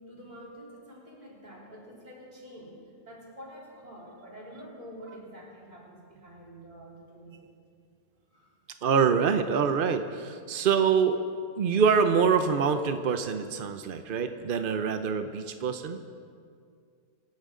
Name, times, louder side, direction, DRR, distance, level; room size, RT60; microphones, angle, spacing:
voice 1, 0.0-2.8 3.1-7.5 8.3-8.5 11.7-11.8, equal, 25° right, -4 dB, 3.6 m, -47 dB
voice 2, 8.8-11.2 11.6-16.0, right 6 dB, 65° right, 8 dB, 0.5 m, -25 dB
25.5 x 12.0 x 3.8 m, 2.2 s
omnidirectional pair, 1.8 m